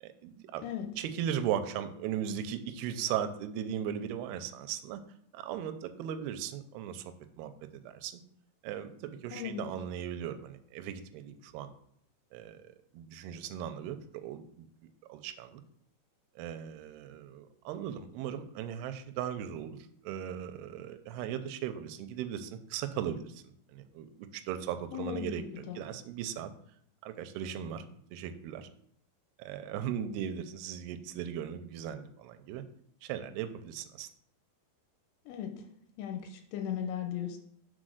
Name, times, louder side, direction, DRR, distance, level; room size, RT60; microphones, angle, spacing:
voice 1, 0.0-0.6 1.0-5.0 5.3-7.0 7.4-8.2 8.6-11.7 12.3-15.6 16.4-19.8 20.0-23.4 23.7-26.5 27.0-27.8 28.1-28.7 29.4-32.6 33.0-34.1, right 9 dB, 80° right, 9 dB, 2.4 m, -38 dB
voice 2, 9.3-9.8 24.9-25.8 35.3-35.5 36.0-37.4, left 9 dB, 85° left, 4 dB, 2.8 m, -37 dB
6.2 x 4.1 x 6.4 m, 0.66 s
omnidirectional pair, 4.9 m